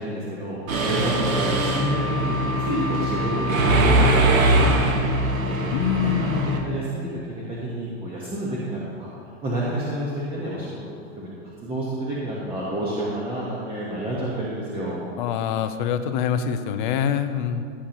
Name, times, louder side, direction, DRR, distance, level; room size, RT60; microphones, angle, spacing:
voice 1, 0.0-5.1 5.4-5.6 6.0-9.1 9.4-11.3 11.6-15.0, right 1 dB, 15° right, -7 dB, 1.2 m, -30 dB
Mechanisms, 0.7-6.6, right 1 dB, 85° right, 1.5 m, -21 dB
voice 2, 5.7-6.5 15.2-17.6, left 8 dB, 40° left, 9 dB, 0.6 m, -25 dB
16.0 x 8.5 x 3.0 m, 2.2 s
supercardioid pair, 155°, 40 cm